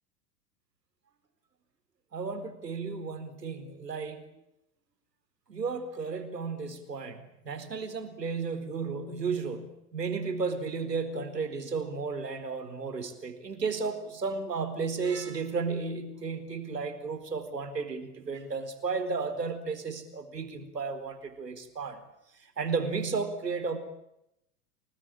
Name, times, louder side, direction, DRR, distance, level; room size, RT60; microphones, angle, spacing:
voice 1, 2.1-4.2 5.5-22.0 22.6-23.8, right 4 dB, 80° right, 10 dB, 4.4 m, -33 dB
30.0 x 20.0 x 8.8 m, 0.83 s
figure-of-eight pair, 90°, 48 cm